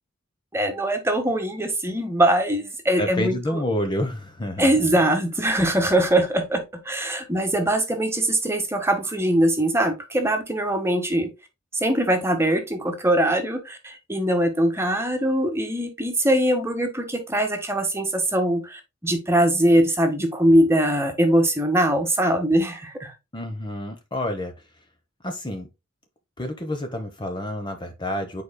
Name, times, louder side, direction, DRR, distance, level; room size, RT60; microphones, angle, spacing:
voice 1, 0.5-3.3 4.6-11.3 11.7-23.1, right 1 dB, 15° right, 1.4 m, -22 dB
voice 2, 3.0-4.7 23.3-24.5 25.2-25.7 26.4-28.4, left 1 dB, 20° left, 1.0 m, -28 dB
9.4 x 4.8 x 2.2 m
head